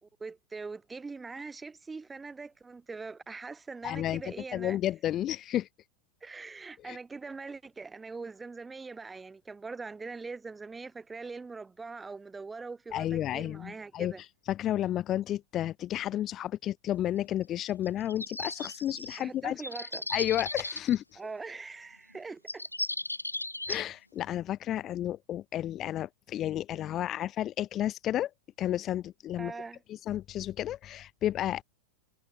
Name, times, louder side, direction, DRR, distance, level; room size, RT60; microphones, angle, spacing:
voice 1, 0.0-4.8 6.2-14.2 19.2-20.0 21.2-22.7 29.4-29.8, right 4 dB, 10° right, 4.3 m, -42 dB
voice 2, 3.8-4.2 4.5-5.7 6.8-7.0 12.9-19.6 20.1-21.2 23.7-28.3 28.6-29.5 29.9-31.6, left 12 dB, 30° left, 2.4 m, -32 dB
sound 1, 17.7-19.2 19.6-20.9 22.1-22.2 22.5-23.8, left 1 dB, 85° left, 2.0 m, -36 dB
figure-of-eight pair, 90°, 0 cm